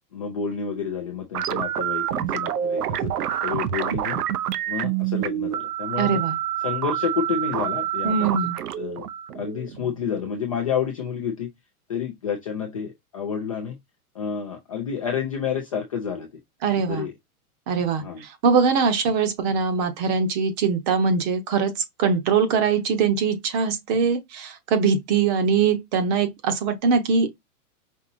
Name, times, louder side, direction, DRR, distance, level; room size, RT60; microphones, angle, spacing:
voice 1, 0.1-3.1 3.4-4.2 4.7-6.2 6.6-8.3 8.8-9.0 9.3-11.5 11.9-13.8 14.1-16.3 16.9-17.1 18.0-18.2, left 7 dB, 25° left, 0.4 m, -29 dB
sound 1, 1.3-10.3, right 11 dB, 85° right, 0.8 m, -27 dB
voice 2, 6.0-6.4 8.0-8.6 16.6-17.1 17.7-21.7 22.0-27.3, right 5 dB, 30° right, 0.8 m, -22 dB
5.4 x 2.7 x 2.5 m
supercardioid pair, 160°, 45 cm